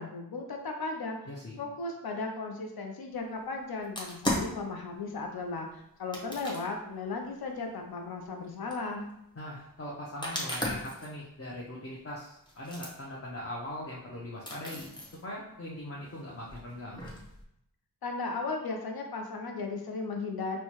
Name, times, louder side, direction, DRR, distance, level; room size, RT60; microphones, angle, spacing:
voice 1, 0.0-1.2 1.6-9.0 18.0-20.6, left 3 dB, 90° left, 3 dB, 0.5 m, -36 dB
voice 2, 1.3-1.6 9.4-14.9 15.2-17.1, left 1 dB, 40° left, -4 dB, 0.7 m, -41 dB
sound 1, 3.8-4.6 6.1-6.7 7.8-7.9 8.7-8.8 10.2-11.1 11.9-12.0 12.5-12.9 13.4-13.5 13.9-14.0 14.5-15.2 15.9-17.4, left 1 dB, 10° left, 0.9 m, -35 dB
4.4 x 2.2 x 2.9 m, 0.79 s
wide cardioid pair, 65°, 36 cm